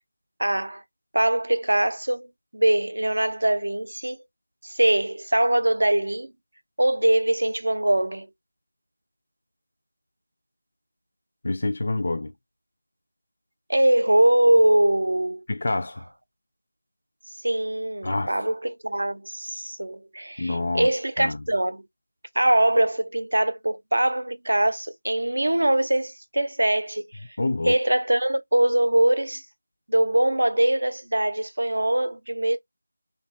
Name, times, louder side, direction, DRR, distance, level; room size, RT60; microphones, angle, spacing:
voice 1, 0.4-0.8 1.1-2.3 2.5-4.2 4.6-6.3 6.8-8.3 13.7-15.4 17.4-21.8 22.4-27.0 27.6-29.4 29.9-32.6, right 1 dB, 80° right, 0.5 m, -22 dB
voice 2, 11.4-12.3 15.5-16.0 18.0-18.4 20.4-20.9 21.2-21.4 27.4-27.8, left 2 dB, 50° left, 0.3 m, -27 dB
2.6 x 2.3 x 2.4 m
figure-of-eight pair, 170°, 0 cm